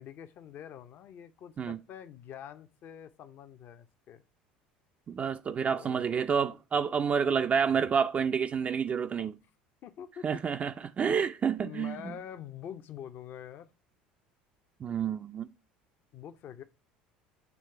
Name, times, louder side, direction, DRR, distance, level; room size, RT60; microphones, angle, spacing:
voice 1, 0.0-4.2 5.7-6.3 8.9-9.3 9.8-10.3 11.1-11.2 11.6-13.7 16.1-16.6, left 9 dB, 50° left, 0.6 m, -46 dB
voice 2, 5.1-9.4 10.2-12.1 14.8-15.5, right 6 dB, 35° right, 0.3 m, -29 dB
8.2 x 3.1 x 4.4 m
hypercardioid pair, 70°, 4 cm